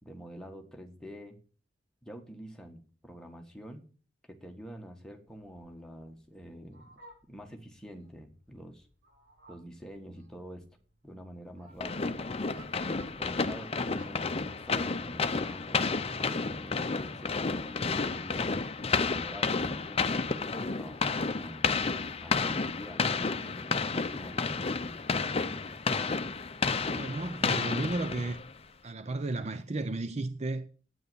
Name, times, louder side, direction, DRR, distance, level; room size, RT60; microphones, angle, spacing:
voice 1, 0.0-1.4 2.0-3.8 4.3-7.0 7.3-8.9 9.5-10.6 11.0-12.3 12.8-18.6 19.1-21.7 22.2-25.0, equal, 5° left, 1.7 m, -47 dB
Fowl, 5.3-14.3, right 2 dB, 65° right, 5.1 m, -59 dB
sound 1, 11.8-28.6, left 4 dB, 30° left, 0.7 m, -31 dB
voice 2, 26.9-28.4 28.8-30.7, right 2 dB, 35° right, 0.6 m, -33 dB
9.4 x 9.4 x 7.1 m
head